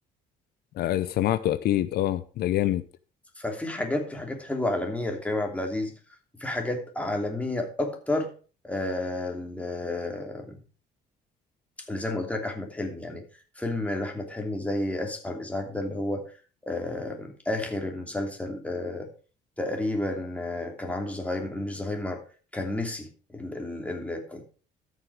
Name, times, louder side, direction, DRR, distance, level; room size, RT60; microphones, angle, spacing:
voice 1, 0.8-2.8, left 13 dB, 70° left, 0.7 m, -25 dB
voice 2, 3.4-5.9 6.4-8.3 8.6-10.6 11.9-13.2 13.6-16.2 16.7-19.1 19.6-22.2 22.5-24.4, left 1 dB, 10° left, 2.9 m, -31 dB
13.5 x 6.5 x 4.8 m
cardioid pair, 110°, 17 cm